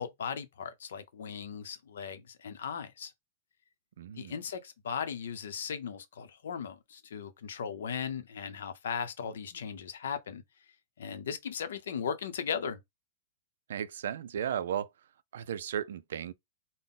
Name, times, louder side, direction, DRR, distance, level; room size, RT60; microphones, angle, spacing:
voice 1, 0.0-3.1 4.2-10.4 11.0-12.8, left 7 dB, 90° left, 0.8 m, -37 dB
voice 2, 4.0-4.4 13.7-14.9 15.3-16.3, right 9 dB, 75° right, 0.4 m, -35 dB
3.9 x 2.1 x 3.7 m
supercardioid pair, 170°, 0 cm